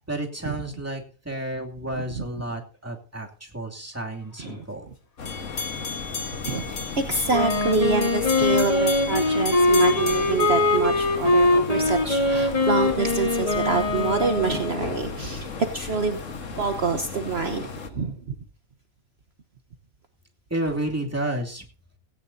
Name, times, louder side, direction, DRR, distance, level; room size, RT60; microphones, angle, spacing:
voice 1, 0.1-4.9 20.5-21.6, right 1 dB, 10° right, 1 dB, 2.6 m, -31 dB
sound 1, 5.2-17.9, left 4 dB, 65° left, 1.8 m, -36 dB
sound 2, 5.3-11.5, left 4 dB, 90° left, 2.7 m, -35 dB
voice 2, 6.4-16.2 16.6-18.3, right 4 dB, 50° right, 6 dB, 1.3 m, -26 dB
Wind instrument woodwind instrument, 7.3-15.1, left 2 dB, 25° left, 2.7 m, -22 dB
17.0 x 17.0 x 2.7 m, 0.39 s
omnidirectional pair, 1.4 m